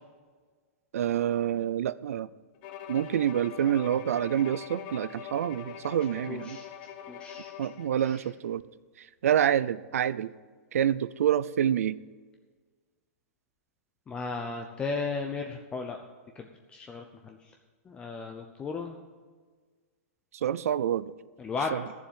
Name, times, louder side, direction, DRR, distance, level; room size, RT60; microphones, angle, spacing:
voice 1, 0.9-2.3 2.9-6.6 7.6-8.6 9.0-10.3 10.7-12.0 20.3-21.1 21.7-21.9, right 10 dB, 75° right, 18 dB, 0.5 m, -27 dB
Bowed string instrument, 2.6-8.0, left 9 dB, 40° left, 1.0 m, -43 dB
voice 2, 6.3-6.7 7.1-7.5 14.1-16.0 16.4-17.4 17.9-19.0 21.4-21.7, left 4 dB, 15° left, 3 dB, 0.7 m, -35 dB
11.5 x 7.2 x 7.5 m, 1.5 s
hypercardioid pair, 150°, 8 cm